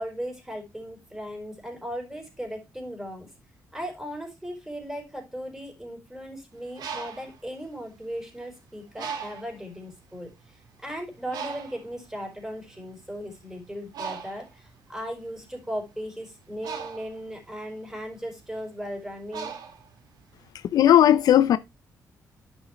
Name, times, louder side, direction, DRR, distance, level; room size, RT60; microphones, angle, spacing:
voice 1, 0.0-3.3 3.7-10.3 10.8-19.6, equal, 5° right, 4.6 m, -37 dB
Bird, 6.6-8.4 9.0-9.6 10.3-10.5 10.7-20.4, right 6 dB, 80° right, 2.0 m, -39 dB
voice 2, 20.7-21.6, left 11 dB, 75° left, 0.5 m, -16 dB
10.5 x 6.3 x 3.1 m
cardioid pair, 115°, 7 cm